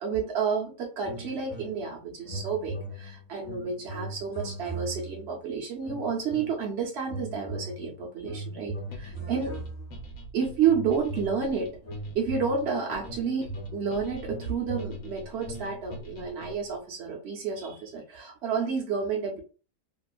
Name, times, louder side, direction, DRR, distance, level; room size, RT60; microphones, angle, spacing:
voice 1, 0.0-9.6 10.3-11.8 12.1-19.4, right 6 dB, 65° right, -2 dB, 0.7 m, -30 dB
sound 1, 1.0-2.0 2.2-5.3 5.8-6.7 7.0-10.1 10.6-16.0, right 1 dB, 40° left, 1.1 m, -39 dB
sound 2, 8.9-16.8, equal, 80° left, 1.2 m, -46 dB
2.8 x 2.3 x 2.3 m, 0.36 s
omnidirectional pair, 1.6 m